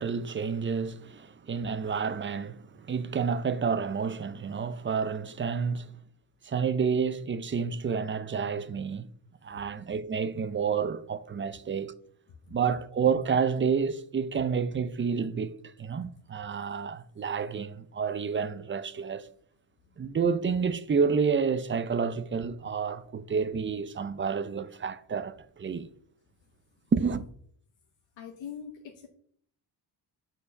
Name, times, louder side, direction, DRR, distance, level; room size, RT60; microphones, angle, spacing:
voice 1, 0.0-5.9 6.4-9.1 9.4-11.9 12.5-15.5 15.8-19.3 20.0-25.9 26.9-27.2, right 6 dB, 25° right, 0.5 m, -29 dB
voice 2, 28.2-29.1, left 8 dB, 75° left, 1.0 m, -42 dB
7.1 x 4.6 x 5.1 m
cardioid pair, 100°, 45 cm